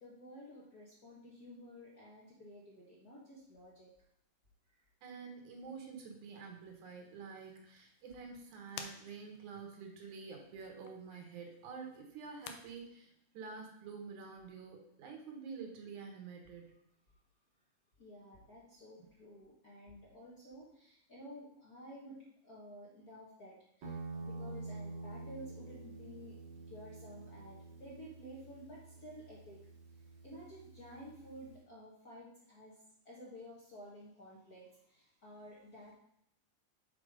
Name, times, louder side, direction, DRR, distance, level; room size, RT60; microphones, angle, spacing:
voice 1, 0.0-3.9 4.7-4.8 18.0-29.6 30.2-32.8 33.0-35.9, equal, 40° left, -6 dB, 1.4 m, -53 dB
voice 2, 5.0-16.8, right 5 dB, 75° right, 2 dB, 2.7 m, -48 dB
sound 1, 5.5-12.5, left 8 dB, 85° left, 2.3 m, -55 dB
Guitar, 23.8-31.6, right 3 dB, 50° right, 1.5 m, -48 dB
6.6 x 4.7 x 5.2 m, 0.73 s
omnidirectional pair, 3.6 m